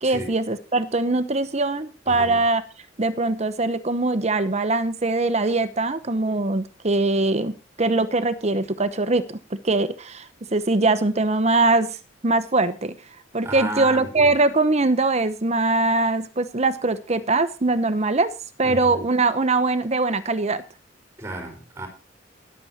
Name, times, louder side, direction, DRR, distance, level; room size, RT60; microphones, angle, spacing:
voice 1, 0.0-2.6 3.0-12.0 12.2-12.9 13.3-18.3 18.6-20.6, right 2 dB, 35° right, 13 dB, 1.0 m, -22 dB
voice 2, 2.1-2.4 13.4-14.4 18.6-19.0 21.2-21.9, right 2 dB, 15° right, 5 dB, 4.7 m, -33 dB
14.0 x 11.5 x 4.3 m, 0.33 s
head